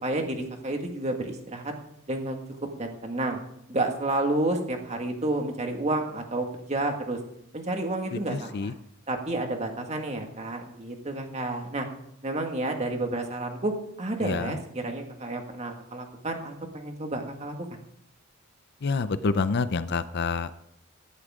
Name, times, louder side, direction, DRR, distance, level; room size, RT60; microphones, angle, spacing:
voice 1, 0.0-1.7 2.1-2.4 2.8-3.4 3.7-7.2 7.5-8.7 9.1-11.9 12.2-13.7 14.0-17.6, right 2 dB, 30° right, 4 dB, 1.8 m, -30 dB
voice 2, 8.1-8.7 14.2-14.6 18.8-20.5, left 4 dB, 50° left, 14 dB, 0.5 m, -28 dB
17.0 x 11.5 x 3.7 m, 0.75 s
head